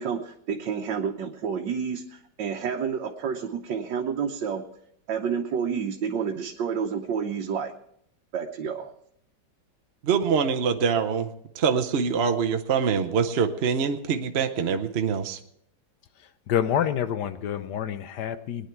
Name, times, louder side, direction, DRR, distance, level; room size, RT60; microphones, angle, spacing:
voice 1, 0.0-4.7 5.1-7.7 8.3-8.9, right 6 dB, 85° right, 2 dB, 1.6 m, -29 dB
voice 2, 10.0-11.3 11.5-15.4, right 6 dB, 50° right, 7 dB, 0.9 m, -24 dB
voice 3, 16.5-18.7, left 9 dB, 70° left, 12 dB, 1.4 m, -27 dB
20.5 x 10.0 x 4.5 m, 0.72 s
omnidirectional pair, 1.9 m